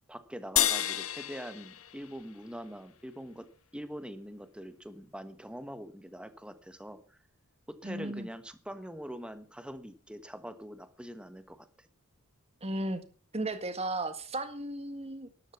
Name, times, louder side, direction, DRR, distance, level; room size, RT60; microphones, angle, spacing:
voice 1, 0.1-3.5 3.7-7.2 7.7-11.9, equal, 5° right, 10 dB, 1.4 m, -43 dB
sound 1, 0.6-3.1, left 11 dB, 70° left, 1.2 m, -32 dB
voice 2, 7.8-8.3 12.6-13.0 13.3-15.5, right 2 dB, 30° right, 10 dB, 1.8 m, -35 dB
13.0 x 11.5 x 7.1 m, 0.41 s
head